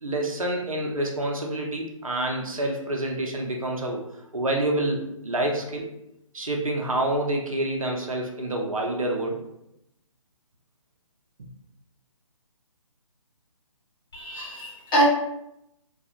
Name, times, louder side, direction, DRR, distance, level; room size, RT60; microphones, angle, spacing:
voice 1, 0.0-4.0 4.3-5.9 6.3-9.4, right 1 dB, 80° right, 1 dB, 0.6 m, -27 dB
voice 2, 14.1-15.0, right 1 dB, 40° left, -6 dB, 1.4 m, -25 dB
2.4 x 2.3 x 2.7 m, 0.81 s
figure-of-eight pair, 140°, 17 cm